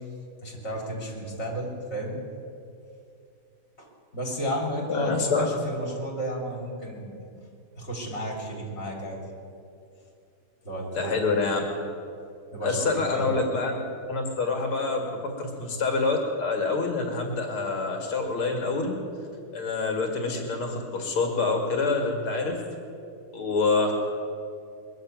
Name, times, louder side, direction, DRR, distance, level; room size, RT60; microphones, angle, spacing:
voice 1, 0.4-2.2 3.8-7.4 7.8-9.2 10.6-11.3 12.5-13.2, equal, 30° left, -1 dB, 3.4 m, -33 dB
voice 2, 4.8-5.5 10.9-11.6 12.6-13.8 14.1-19.0 19.5-22.6 23.3-23.9, left 3 dB, 85° left, 2 dB, 3.0 m, -26 dB
21.5 x 7.4 x 9.0 m, 2.5 s
omnidirectional pair, 2.3 m